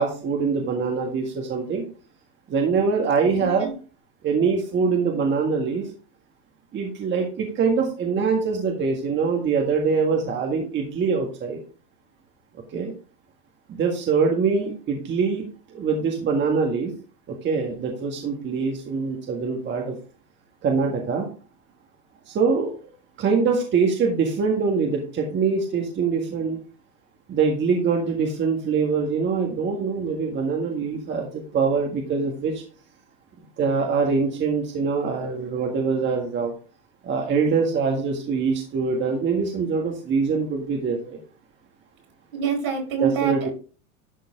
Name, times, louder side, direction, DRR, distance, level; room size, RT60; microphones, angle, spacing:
voice 1, 0.0-1.8 2.5-3.7 4.2-5.9 6.7-11.6 12.7-12.9 13.7-15.4 15.7-16.9 17.3-20.0 20.6-21.3 22.3-22.7 23.2-26.6 27.3-32.6 33.6-36.5 37.0-41.2 43.0-43.5, right 5 dB, 25° right, 1 dB, 1.6 m, -24 dB
voice 2, 3.3-3.7 42.3-43.3, right 7 dB, 70° right, 0 dB, 4.6 m, -26 dB
11.5 x 3.8 x 3.7 m, 0.37 s
hypercardioid pair, 115°, 42 cm